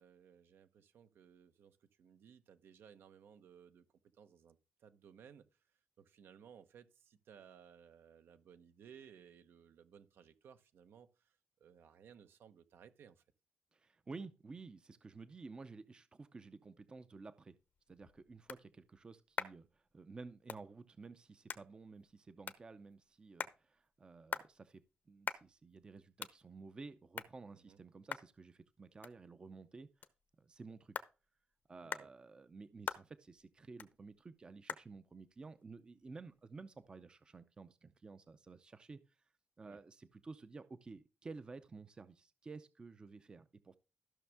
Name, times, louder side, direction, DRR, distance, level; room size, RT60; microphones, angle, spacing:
voice 1, 0.0-3.8 4.1-13.2 27.5-27.8 31.8-32.1 39.6-39.8, right 8 dB, 75° right, 1.0 m, -60 dB
voice 2, 13.7-17.6 17.9-29.9 30.4-31.0 31.7-39.2 39.6-43.8, right 4 dB, 25° right, 0.6 m, -53 dB
sound 1, 17.6-36.9, left 7 dB, 50° left, 0.8 m, -49 dB
14.0 x 6.3 x 3.5 m
wide cardioid pair, 175°, 4 cm